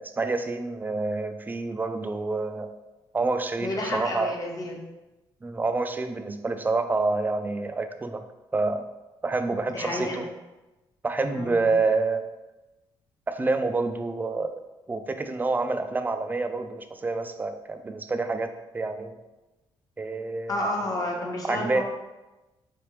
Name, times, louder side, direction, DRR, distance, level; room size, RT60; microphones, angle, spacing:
voice 1, 0.0-2.7 3.1-4.3 5.4-8.2 8.5-8.8 9.2-10.2 11.0-12.3 13.3-14.5 14.9-19.2 20.0-20.6 21.4-21.8, right 3 dB, 20° right, 8 dB, 0.3 m, -28 dB
voice 2, 3.6-4.8 9.7-10.2 11.3-11.7 20.5-21.8, left 1 dB, 40° left, -1 dB, 1.0 m, -30 dB
3.7 x 3.4 x 3.1 m, 1.0 s
cardioid pair, 95°, 10 cm